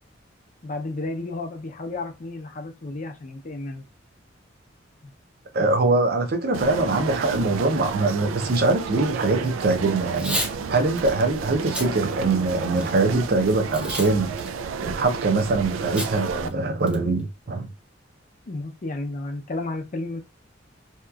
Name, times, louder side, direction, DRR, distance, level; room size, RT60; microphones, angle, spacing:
voice 1, 0.6-3.9 5.0-5.1 5.6-5.7 18.5-20.2, left 2 dB, 40° left, 0.5 m, -32 dB
voice 2, 5.5-10.4 10.7-14.3 14.8-17.7, right 3 dB, 50° right, 0.6 m, -23 dB
sound 1, 6.5-16.5, right 5 dB, 85° right, 0.3 m, -31 dB
Packing tape duct tape / Tearing, 10.1-10.5 11.0-11.1 11.6-11.9 12.4-13.0 13.7-14.1 14.4-14.5 16.0-16.1 16.5-16.6 16.9-17.2, equal, 5° right, 0.5 m, -30 dB
2.8 x 2.4 x 2.2 m
head